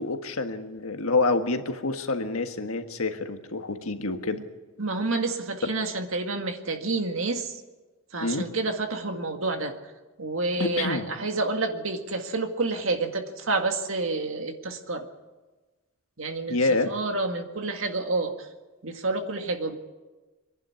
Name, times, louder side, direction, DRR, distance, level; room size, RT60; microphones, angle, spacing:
voice 1, 0.0-4.4 8.2-8.5 10.6-11.1 16.5-16.9, left 3 dB, 85° left, 6 dB, 1.6 m, -27 dB
voice 2, 4.8-7.6 8.1-9.7 10.2-15.1 16.2-18.5 18.8-19.8, right 3 dB, 70° right, 5 dB, 1.9 m, -29 dB
24.0 x 11.0 x 9.7 m, 1.2 s
head